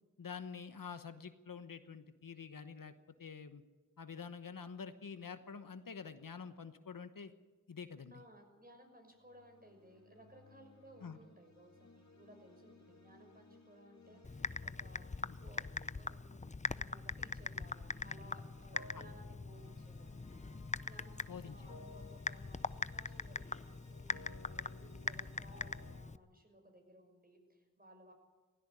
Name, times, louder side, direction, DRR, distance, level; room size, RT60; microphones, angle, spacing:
voice 1, 0.2-2.9 3.2-3.6 4.0-7.3 7.7-8.1 11.0-11.2 15.3-15.4 18.9-19.0 21.3-21.8, left 6 dB, 70° left, 10 dB, 1.1 m, -47 dB
voice 2, 8.1-28.1, right 1 dB, 25° right, 4 dB, 6.2 m, -61 dB
sound 1, 9.2-26.0, left 2 dB, 50° left, 2.5 m, -59 dB
Typing, 14.2-26.2, left 3 dB, 20° left, 0.6 m, -42 dB
17.5 x 16.5 x 9.6 m, 1.2 s
wide cardioid pair, 50°, 34 cm